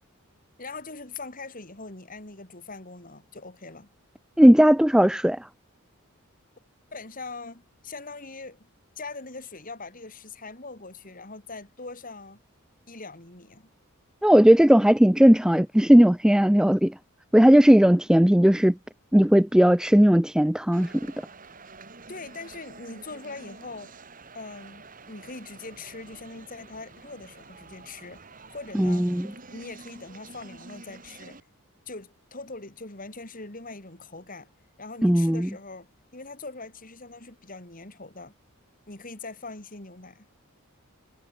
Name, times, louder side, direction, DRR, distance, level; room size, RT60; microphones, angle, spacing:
voice 1, 0.6-3.9 6.9-8.7 9.0-12.4 12.9-13.7 22.1-23.9 24.3-28.2 28.5-29.1 29.5-31.4 31.9-34.5 34.8-38.3 38.9-40.3, left 3 dB, 40° left, 3.6 m, -41 dB
voice 2, 4.4-5.5 14.2-16.9 17.3-18.7 19.1-21.1 28.7-29.3 35.0-35.5, equal, 5° right, 0.4 m, -17 dB
sound 1, 20.7-31.4, right 3 dB, 40° right, 3.5 m, -48 dB
head